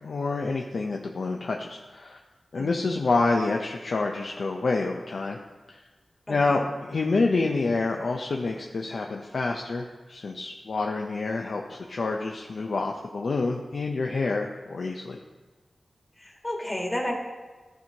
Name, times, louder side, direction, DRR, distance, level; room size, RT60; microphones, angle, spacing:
voice 1, 0.0-2.2 2.5-5.4 5.7-5.8 6.3-15.2, left 3 dB, 70° left, 1 dB, 0.5 m, -28 dB
voice 2, 2.6-2.9 6.3-6.4 16.2-17.1, left 1 dB, 25° left, 0 dB, 1.7 m, -31 dB
12.5 x 4.5 x 2.9 m, 1.3 s
cardioid pair, 55°, 0 cm